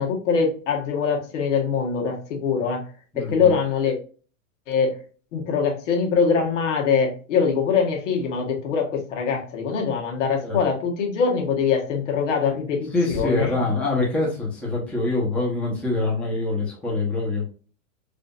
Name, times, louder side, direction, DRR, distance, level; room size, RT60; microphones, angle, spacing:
voice 1, 0.0-2.8 3.1-4.0 4.7-5.0 5.3-13.5, left 6 dB, 60° left, 2 dB, 1.4 m, -23 dB
voice 2, 3.1-3.5 10.4-10.6 12.9-17.5, left 2 dB, 5° left, -5 dB, 0.9 m, -24 dB
5.0 x 2.6 x 2.4 m, 0.38 s
supercardioid pair, 150°, 40 cm